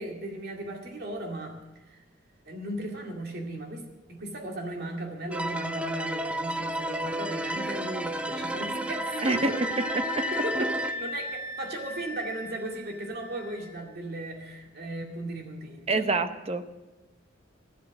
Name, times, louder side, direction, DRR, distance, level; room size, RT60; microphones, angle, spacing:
voice 1, 0.0-2.0 2.4-9.6 10.3-16.2, right 1 dB, 60° right, 1 dB, 2.2 m, -36 dB
sound 1, 5.3-10.9, right 1 dB, 5° right, 0.6 m, -32 dB
sound 2, 7.0-13.8, left 2 dB, 10° left, 3.3 m, -38 dB
voice 2, 9.2-9.5 9.9-10.2 15.9-16.7, right 3 dB, 35° right, 9 dB, 0.9 m, -27 dB
13.5 x 12.0 x 6.3 m, 1.1 s
head